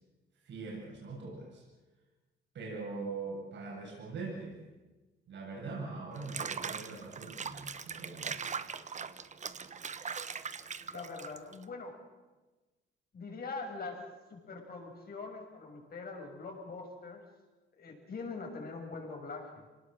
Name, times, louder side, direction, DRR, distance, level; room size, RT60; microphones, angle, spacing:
voice 1, 0.4-1.6 2.5-4.6 5.3-8.5, right 3 dB, 65° right, -3 dB, 7.7 m, -42 dB
Water / Bathtub (filling or washing), 6.2-11.6, right 6 dB, 35° right, 1.1 m, -40 dB
voice 2, 10.9-12.0 13.1-14.0 14.3-17.2 17.7-19.6, left 4 dB, 50° left, 2 dB, 6.6 m, -43 dB
24.5 x 19.0 x 7.7 m, 1.2 s
cardioid pair, 90°, 20 cm